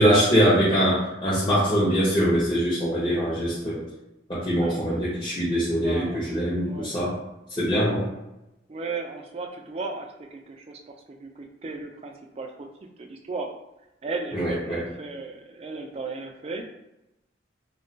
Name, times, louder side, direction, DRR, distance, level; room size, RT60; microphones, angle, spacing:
voice 1, 0.0-3.8 4.3-7.1 7.5-8.1 14.3-14.8, equal, 25° left, -10 dB, 0.6 m, -23 dB
voice 2, 4.6-5.1 5.8-6.9 8.7-12.7 13.0-13.5 14.0-16.6, right 3 dB, 30° right, 2 dB, 0.3 m, -35 dB
2.2 x 2.2 x 3.8 m, 0.92 s
head